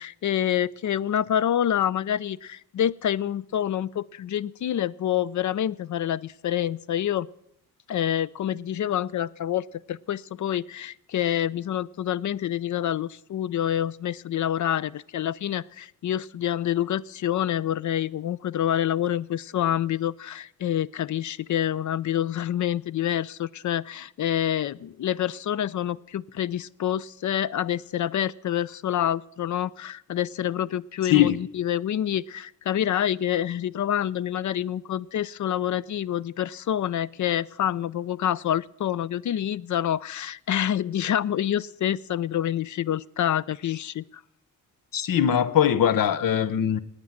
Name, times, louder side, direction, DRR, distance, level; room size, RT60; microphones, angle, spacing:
voice 1, 0.0-7.3 7.9-44.0, left 10 dB, 60° left, 0.5 m, -27 dB
voice 2, 44.9-46.8, left 10 dB, 80° left, 0.9 m, -21 dB
18.5 x 8.9 x 7.2 m
wide cardioid pair, 170°, 33 cm